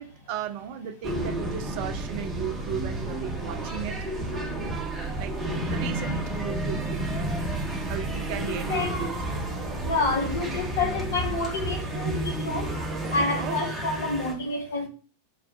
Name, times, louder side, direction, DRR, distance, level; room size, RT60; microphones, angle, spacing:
voice 1, 0.0-4.0 5.2-5.4 5.7-7.1 7.9-9.2 13.4-13.6, right 9 dB, 45° right, 0.3 m, -35 dB
sound 1, 1.0-14.3, right 1 dB, 10° right, 0.8 m, -31 dB
voice 2, 8.1-9.0 9.8-12.7 13.1-14.9, left 3 dB, 60° left, 0.7 m, -29 dB
2.2 x 2.1 x 2.5 m
figure-of-eight pair, 90°, 0 cm